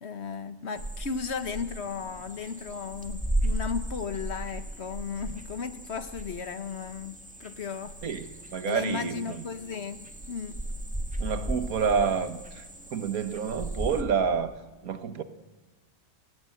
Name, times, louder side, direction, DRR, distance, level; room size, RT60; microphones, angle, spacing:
voice 1, 0.0-8.0 8.6-10.6, left 6 dB, 50° left, 1.2 m, -35 dB
sound 1, 0.8-14.0, right 1 dB, 5° right, 1.6 m, -36 dB
voice 2, 8.0-9.4 11.2-14.5 14.8-15.2, right 6 dB, 85° right, 1.6 m, -29 dB
28.5 x 18.0 x 7.7 m
omnidirectional pair, 1.5 m